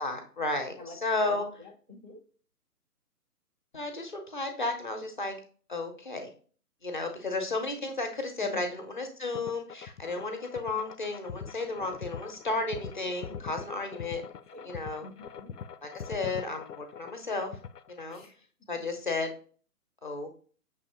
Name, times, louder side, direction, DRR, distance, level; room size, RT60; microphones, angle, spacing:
voice 1, 0.0-1.5 3.7-5.3 5.7-6.3 6.8-14.2 14.6-15.1 15.8-17.6 17.9-18.2 18.7-19.3 20.0-20.3, left 3 dB, 30° left, 6 dB, 0.6 m, -33 dB
voice 2, 0.8-2.2 8.4-8.8 13.9-14.2 14.5-15.5 18.1-18.5, left 2 dB, 25° right, 0 dB, 0.4 m, -48 dB
sound 1, 9.3-18.3, left 7 dB, 80° left, 0.5 m, -43 dB
6.1 x 2.8 x 2.8 m, 0.42 s
figure-of-eight pair, 135°, 47 cm